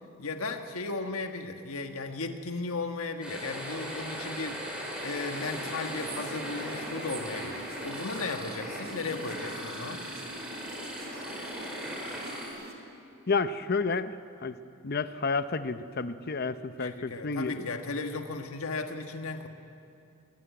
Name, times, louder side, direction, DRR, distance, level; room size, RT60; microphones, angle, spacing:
voice 1, 0.2-10.0 16.8-19.5, left 3 dB, 90° left, 6 dB, 1.5 m, -36 dB
sound 1, 3.2-12.5, equal, 5° right, 5.1 m, -38 dB
sound 2, 5.3-12.7, right 1 dB, 50° right, 3.1 m, -43 dB
voice 2, 13.3-14.2 14.4-14.6 14.8-17.7, left 4 dB, 45° left, 12 dB, 0.7 m, -30 dB
21.5 x 20.0 x 9.3 m, 2.5 s
head